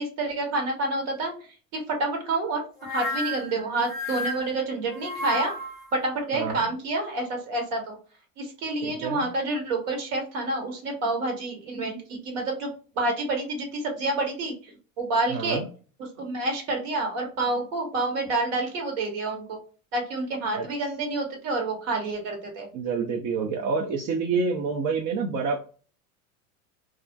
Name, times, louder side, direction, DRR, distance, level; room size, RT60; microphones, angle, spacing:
voice 1, 0.0-1.3 1.7-2.6 2.9-5.5 5.9-8.0 8.4-12.7 12.9-15.6 16.0-19.6 19.9-22.7, right 2 dB, 65° right, 2 dB, 1.2 m, -28 dB
sound 1, 2.8-5.9, left 2 dB, 10° left, 0.8 m, -32 dB
voice 2, 6.3-6.7 8.8-9.3 15.3-15.6 20.6-20.7 22.7-25.6, right 4 dB, 45° right, 2 dB, 0.5 m, -28 dB
2.4 x 2.0 x 2.6 m, 0.38 s
hypercardioid pair, 85°, 39 cm